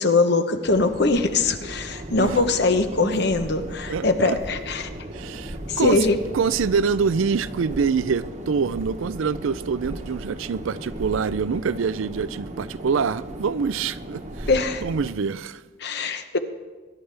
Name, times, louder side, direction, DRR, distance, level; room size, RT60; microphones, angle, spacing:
voice 1, 0.0-4.9 5.7-6.2 14.5-14.8 15.8-16.4, left 3 dB, 50° left, 0.9 m, -22 dB
sound 1, 0.6-15.1, right 1 dB, 35° right, 1.2 m, -36 dB
voice 2, 2.1-2.4 3.0-3.1 3.9-4.4 5.1-6.1 6.3-14.5 14.8-15.6, right 5 dB, 75° right, 0.4 m, -25 dB
22.0 x 11.5 x 3.4 m
head